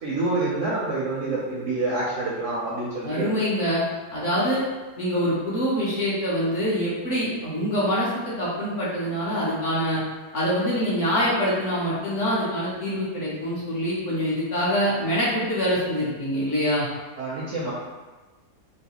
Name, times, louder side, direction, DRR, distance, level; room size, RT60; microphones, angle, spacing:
voice 1, 0.0-3.3 17.2-17.7, right 2 dB, 65° right, -6 dB, 0.8 m, -27 dB
voice 2, 3.0-3.8 4.1-4.6 5.0-10.0 10.3-16.9, equal, 55° left, -8 dB, 0.9 m, -25 dB
3.1 x 2.7 x 2.8 m, 1.2 s
omnidirectional pair, 1.8 m